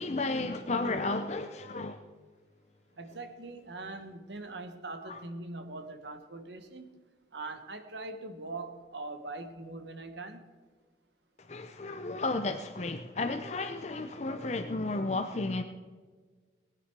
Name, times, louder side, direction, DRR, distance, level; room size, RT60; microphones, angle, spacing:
voice 1, 0.0-2.0 5.0-5.2 11.5-15.6, left 2 dB, 40° left, 6 dB, 0.7 m, -33 dB
voice 2, 3.0-6.9 7.3-10.4, right 2 dB, 80° right, 7 dB, 1.5 m, -42 dB
19.0 x 9.4 x 4.7 m, 1.5 s
head